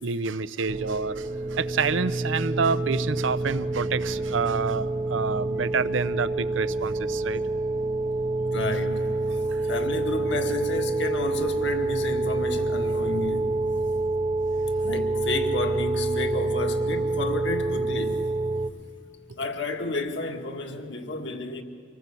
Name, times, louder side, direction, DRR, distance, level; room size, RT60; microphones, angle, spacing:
voice 1, 0.0-7.4 9.5-9.6, right 5 dB, 75° right, 0.7 m, -28 dB
sound 1, 0.7-18.7, right 2 dB, 35° right, 0.7 m, -27 dB
voice 2, 8.5-9.1 9.7-13.5 14.8-18.2 19.3-21.6, left 2 dB, 60° left, 1.9 m, -31 dB
25.0 x 19.0 x 8.3 m
head